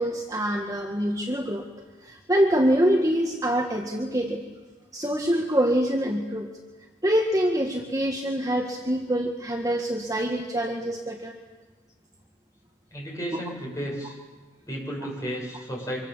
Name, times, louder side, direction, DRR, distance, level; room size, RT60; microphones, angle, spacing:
voice 1, 0.0-1.7 2.0-4.4 4.9-6.5 7.0-11.4, equal, 20° right, 1 dB, 1.6 m, -25 dB
voice 2, 12.9-14.2 14.7-16.0, equal, 15° left, -3 dB, 7.8 m, -33 dB
25.5 x 24.0 x 7.4 m, 1.3 s
head